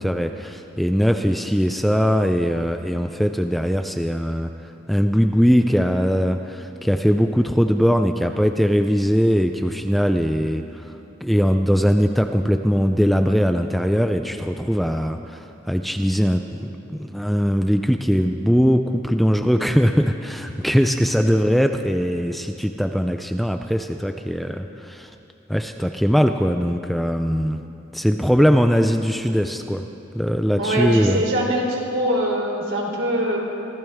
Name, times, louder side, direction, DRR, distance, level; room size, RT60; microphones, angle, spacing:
voice 1, 0.0-4.5 4.9-10.9 11.2-25.1 25.5-27.6 27.9-29.9 30.1-31.2, equal, ahead, 6 dB, 0.4 m, -20 dB
voice 2, 30.6-33.4, right 1 dB, 70° right, -2 dB, 3.6 m, -23 dB
25.0 x 15.5 x 3.6 m, 2.8 s
head